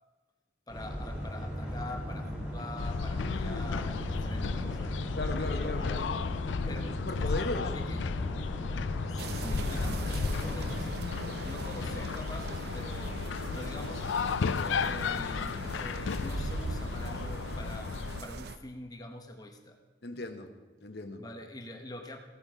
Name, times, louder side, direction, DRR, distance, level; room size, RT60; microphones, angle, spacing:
voice 1, 0.7-4.9 5.5-6.2 6.7-8.2 9.0-10.9 11.4-14.1 14.6-19.8 21.2-22.2, left 1 dB, 20° left, 5 dB, 1.0 m, -45 dB
sound 1, 0.7-10.8, equal, 5° right, 3.6 m, -38 dB
sound 2, 2.8-18.2, left 5 dB, 90° left, 0.4 m, -34 dB
voice 2, 3.2-3.8 5.1-6.1 7.0-7.6 11.2-11.5 20.0-20.5 20.8-21.2, left 2 dB, 65° left, 6 dB, 1.1 m, -37 dB
sound 3, 9.2-18.6, right 3 dB, 60° right, 0.6 m, -40 dB
15.0 x 10.5 x 4.9 m, 1.3 s
head